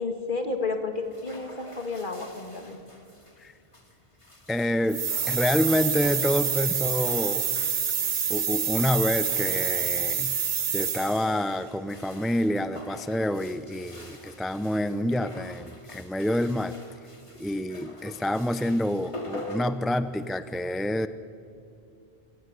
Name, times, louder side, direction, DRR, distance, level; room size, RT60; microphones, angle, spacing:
voice 1, 0.0-2.8, left 3 dB, 50° left, 5 dB, 2.4 m, -31 dB
sound 1, 0.9-20.5, left 1 dB, 30° left, 2.5 m, -46 dB
voice 2, 4.5-7.5 8.3-10.4 10.7-16.7 17.4-21.1, left 1 dB, ahead, 12 dB, 0.5 m, -27 dB
sound 2, 4.9-11.3, right 7 dB, 55° right, 0.9 m, -27 dB
26.5 x 16.0 x 9.8 m, 2.5 s
omnidirectional pair, 1.1 m